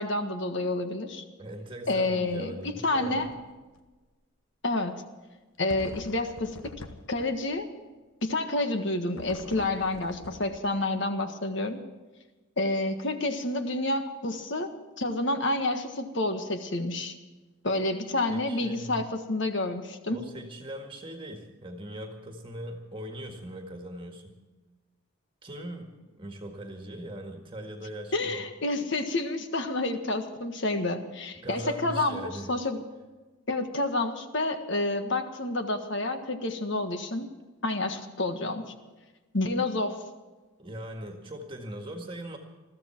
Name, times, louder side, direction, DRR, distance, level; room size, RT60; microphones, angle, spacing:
voice 1, 0.0-1.2 1.9-3.3 4.6-5.0 5.6-6.6 7.1-7.7 8.2-11.8 12.6-14.7 15.0-17.1 17.6-20.2 28.1-32.8 33.5-37.3 37.6-38.6 39.3-40.0, left 2 dB, 55° left, 7 dB, 1.6 m, -29 dB
voice 2, 1.4-3.4 18.3-19.1 20.1-24.4 25.4-28.5 31.4-32.5 40.6-42.4, right 1 dB, 25° right, 4 dB, 1.8 m, -40 dB
sound 1, 3.1-3.4 3.8-3.9 5.7-7.6 9.2-10.9, left 2 dB, 85° left, 1.3 m, -44 dB
21.5 x 14.5 x 4.6 m, 1.2 s
head